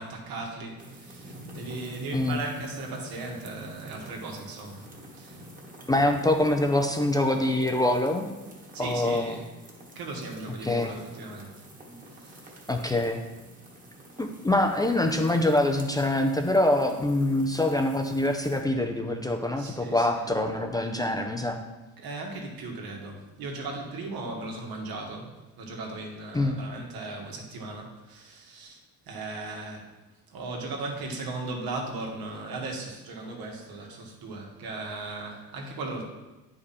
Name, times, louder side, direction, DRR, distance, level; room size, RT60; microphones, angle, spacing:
voice 1, 0.0-4.9 5.1-5.4 8.7-9.5 10.0-11.7 12.1-12.6 19.6-20.3 22.0-28.8 29.1-29.9 30.3-36.0, right 3 dB, 80° right, 1 dB, 1.8 m, -37 dB
sound 1, 0.8-18.6, right 1 dB, 20° right, 1.4 m, -48 dB
voice 2, 5.9-8.3 8.8-9.4 10.6-10.9 12.7-13.2 14.2-21.6 26.3-26.6, left 1 dB, 10° left, 4 dB, 0.4 m, -25 dB
9.4 x 5.2 x 4.2 m, 1.1 s
cardioid pair, 155°, 36 cm